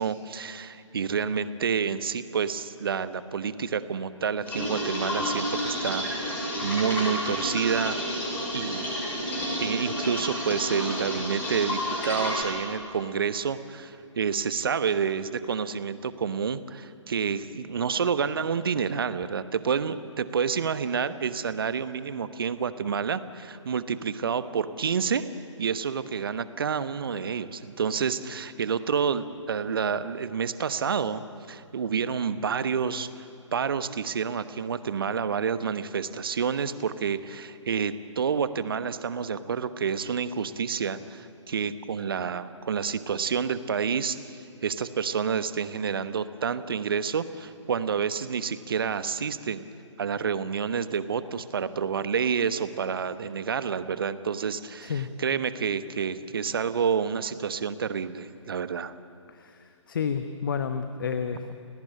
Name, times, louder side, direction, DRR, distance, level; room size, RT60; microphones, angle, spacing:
voice 1, 0.0-8.9 9.6-25.3 25.6-31.2 31.5-49.6 50.0-54.9 55.2-58.9, right 6 dB, 45° right, 13 dB, 1.1 m, -29 dB
sound 1, 4.4-12.4, equal, 10° left, 6.3 m, -30 dB
voice 2, 54.8-55.1 59.3-61.5, left 6 dB, 40° left, 9 dB, 1.1 m, -31 dB
30.0 x 18.0 x 8.8 m, 2.8 s
figure-of-eight pair, 135°, 16 cm